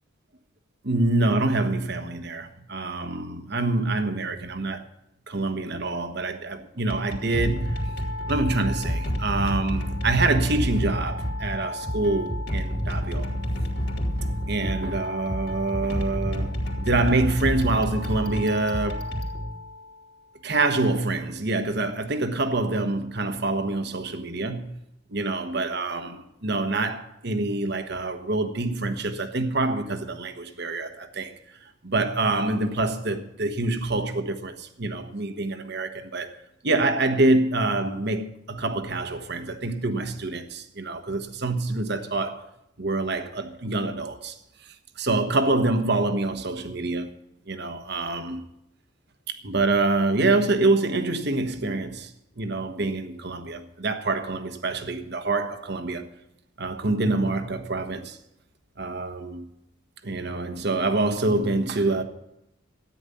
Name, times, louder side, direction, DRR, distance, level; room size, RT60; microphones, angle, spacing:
voice 1, 0.8-4.9 5.3-7.9 8.3-13.3 14.5-19.1 20.4-24.8 25.1-31.3 31.8-36.4 36.6-42.5 42.8-44.4 44.6-47.1 47.5-48.5 49.3-56.1 56.6-58.2 58.8-59.5 60.0-62.0, right 2 dB, 55° right, 1.3 m, -26 dB
sound 1, 6.8-20.0, equal, 55° left, 3.1 m, -29 dB
13.5 x 9.9 x 6.9 m
head